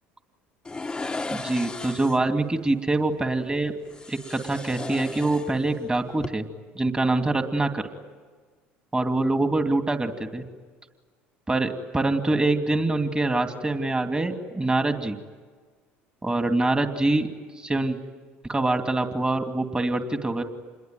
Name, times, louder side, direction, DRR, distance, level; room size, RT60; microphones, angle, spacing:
sound 1, 0.6-2.3 3.9-5.8 6.1-6.3, left 3 dB, 15° left, 1.0 m, -35 dB
voice 1, 1.3-3.7 4.1-6.5 6.7-7.9 8.9-10.4 11.5-15.2 16.2-17.3 17.6-18.0 18.5-20.4, right 2 dB, 15° right, 6 dB, 2.5 m, -24 dB
27.5 x 21.5 x 9.3 m, 1.5 s
hypercardioid pair, 75°, 6 cm